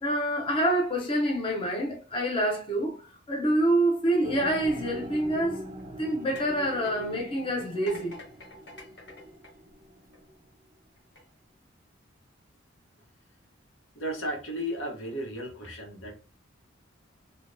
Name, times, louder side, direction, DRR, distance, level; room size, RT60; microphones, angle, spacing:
voice 1, 0.0-5.6 6.0-8.2, right 1 dB, 25° left, 0.6 m, -27 dB
sound 1, 4.2-10.4, equal, 30° right, 0.3 m, -43 dB
sound 2, 5.5-10.4 11.0-11.2, left 1 dB, 60° left, 1.1 m, -50 dB
voice 2, 13.9-16.2, equal, 85° left, 1.0 m, -34 dB
3.3 x 2.2 x 2.6 m
head